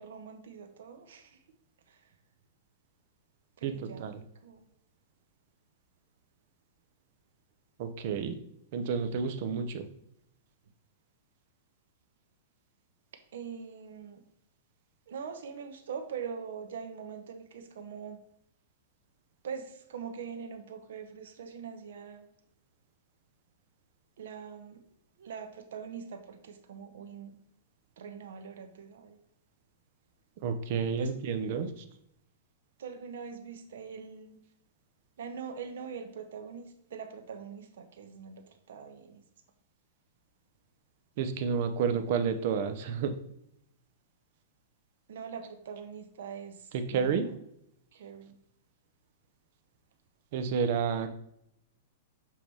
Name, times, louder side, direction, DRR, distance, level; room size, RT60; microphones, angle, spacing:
voice 1, 0.0-1.4 1.9-2.0 3.6-4.1 4.4-4.6 13.3-14.2 15.1-18.2 19.4-22.3 24.2-24.8 25.2-27.4 28.0-29.2 31.0-31.1 32.8-34.4 35.2-39.2 45.1-47.4 47.9-48.4, right 6 dB, 75° right, 6 dB, 1.0 m, -43 dB
voice 2, 3.6-4.2 7.8-8.4 8.7-9.9 30.4-31.8 41.2-43.2 46.7-47.3 50.3-51.1, right 6 dB, 50° right, 8 dB, 0.7 m, -30 dB
7.2 x 2.9 x 4.7 m, 0.75 s
supercardioid pair, 160°, 0 cm